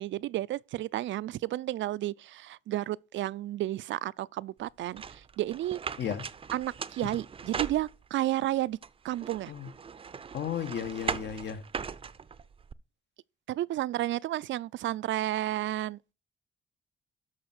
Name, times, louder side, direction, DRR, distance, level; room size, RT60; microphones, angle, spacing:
voice 1, 0.0-5.8 6.5-8.8 9.0-9.5 13.5-16.0, right 14 dB, 75° right, 0.4 m, -32 dB
sound 1, 5.0-8.3 8.8-12.7, right 6 dB, 30° right, 0.5 m, -39 dB
voice 2, 10.3-11.6, left 9 dB, 65° left, 1.3 m, -34 dB
13.0 x 5.5 x 6.0 m
cardioid pair, 145°, 20 cm